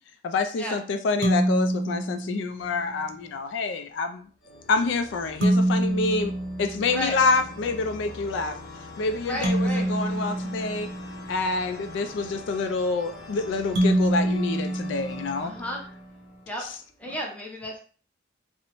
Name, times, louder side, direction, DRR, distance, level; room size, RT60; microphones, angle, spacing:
voice 1, 0.2-4.3 4.7-8.6 9.0-10.9 11.3-15.5, left 3 dB, 75° left, 7 dB, 0.3 m, -27 dB
sound 1, 1.2-2.9 5.4-7.4 9.4-11.6 13.8-15.8, right 1 dB, 90° right, 0.7 m, -26 dB
sound 2, 2.6-3.8 4.4-17.0, left 1 dB, 60° left, 0.9 m, -44 dB
voice 2, 6.9-7.2 9.2-10.2 15.4-15.8 16.5-16.7 17.0-17.8, equal, 10° left, -2 dB, 0.6 m, -33 dB
2.6 x 2.0 x 2.9 m, 0.41 s
head